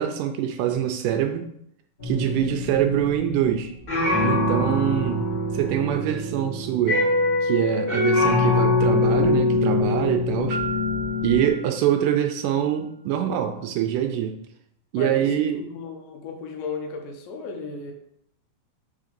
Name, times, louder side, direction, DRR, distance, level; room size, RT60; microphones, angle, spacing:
voice 1, 0.0-1.5 2.0-3.7 4.2-5.2 5.5-7.0 7.4-10.6 11.2-14.3 14.9-15.7, right 10 dB, 80° right, 5 dB, 2.0 m, -24 dB
sound 1, 2.0-11.5, left 2 dB, 30° left, 0.9 m, -23 dB
Piano, 10.5-12.4, right 3 dB, 45° right, 0.9 m, -35 dB
voice 2, 15.0-15.3 15.6-17.9, left 5 dB, 85° left, 3 dB, 2.6 m, -34 dB
5.7 x 3.6 x 5.2 m, 0.72 s
omnidirectional pair, 4.0 m